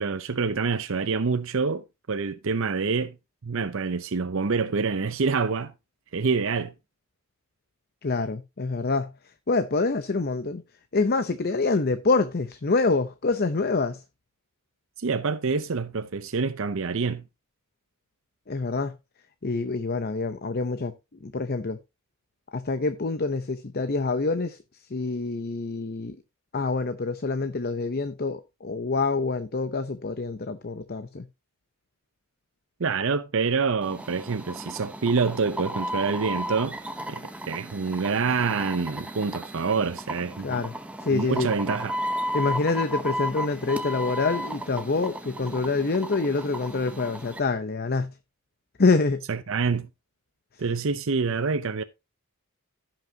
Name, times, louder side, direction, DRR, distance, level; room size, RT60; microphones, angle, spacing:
voice 1, 0.0-3.2 3.4-5.7 6.1-6.7 15.0-17.3 32.8-36.8 37.1-40.6 41.1-42.0 49.3-49.9 50.6-51.8, right 4 dB, 60° right, 0.6 m, -26 dB
voice 2, 8.0-9.1 9.5-10.6 10.9-14.0 18.5-18.9 19.4-20.9 21.2-21.8 22.5-24.6 24.9-26.2 26.5-31.3 40.4-40.7 41.0-41.5 42.3-48.1 48.8-49.2, left 3 dB, 45° left, 0.7 m, -26 dB
sound 1, 33.8-47.4, equal, 5° right, 0.9 m, -34 dB
16.0 x 5.9 x 2.8 m
head